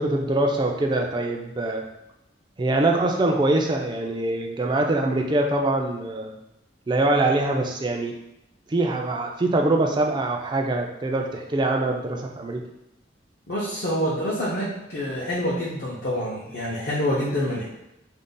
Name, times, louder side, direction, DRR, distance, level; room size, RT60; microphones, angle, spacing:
voice 1, 0.0-1.8 2.6-6.3 6.9-8.1 8.7-12.6, right 2 dB, 25° right, 2 dB, 0.3 m, -23 dB
voice 2, 13.5-17.6, equal, 60° left, -7 dB, 0.6 m, -27 dB
2.5 x 2.1 x 3.7 m, 0.88 s
head